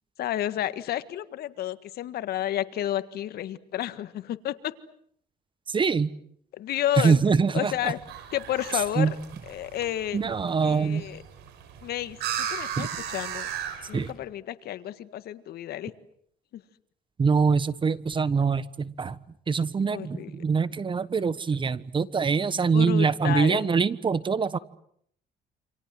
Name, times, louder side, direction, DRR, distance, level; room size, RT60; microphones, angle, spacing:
voice 1, 0.2-4.7 6.5-7.2 7.5-8.0 8.3-9.1 9.5-10.2 10.6-11.2 11.8-13.5 13.9-15.9 16.5-16.6 19.9-20.3 22.5-23.7, left 12 dB, 65° left, 13 dB, 1.7 m, -31 dB
voice 2, 5.7-6.1 7.0-7.9 9.0-9.1 10.1-11.1 12.8-12.9 13.9-14.1 17.2-19.2 19.5-24.6, right 5 dB, 30° right, 17 dB, 1.2 m, -24 dB
sound 1, 7.7-14.1, right 9 dB, 85° right, 6.0 m, -37 dB
28.5 x 26.5 x 7.8 m, 0.68 s
cardioid pair, 110°, 17 cm